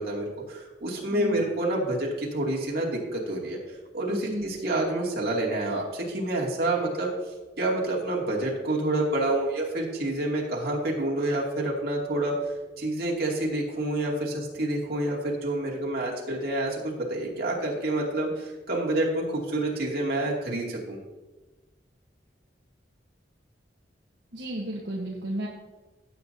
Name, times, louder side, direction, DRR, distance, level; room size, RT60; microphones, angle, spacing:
voice 1, 0.0-3.6 3.9-7.1 7.6-12.3 12.8-21.0, right 1 dB, 55° right, -2 dB, 2.6 m, -28 dB
voice 2, 1.1-1.4 4.1-4.4 24.3-25.5, right 1 dB, 75° right, -3 dB, 1.4 m, -33 dB
16.0 x 8.3 x 2.8 m, 1.2 s
head